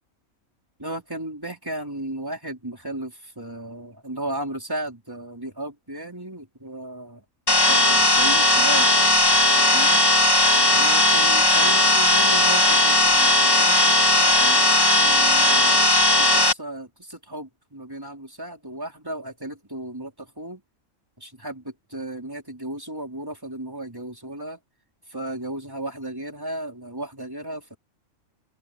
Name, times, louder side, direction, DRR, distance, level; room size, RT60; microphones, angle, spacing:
voice 1, 0.8-7.2 7.7-8.9 9.3-9.4 9.7-10.0 10.7-15.8 16.1-20.6 21.2-24.6 25.1-27.8, right 1 dB, 15° right, 4.0 m, -35 dB
sound 1, 7.5-16.5, left 2 dB, 15° left, 1.9 m, -17 dB
omnidirectional pair, 1.4 m